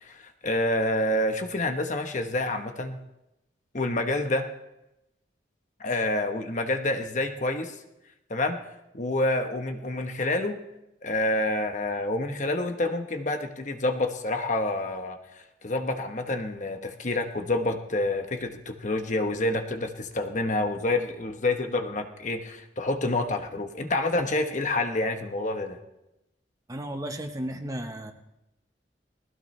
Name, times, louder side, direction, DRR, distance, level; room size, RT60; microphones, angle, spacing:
voice 1, 0.0-3.0 3.7-4.5 5.8-7.7 8.3-8.6 8.9-10.6 11.0-25.8, left 2 dB, 40° left, 6 dB, 1.1 m, -28 dB
voice 2, 26.7-28.1, right 1 dB, 20° right, 5 dB, 1.1 m, -34 dB
20.0 x 15.5 x 3.3 m, 0.90 s
head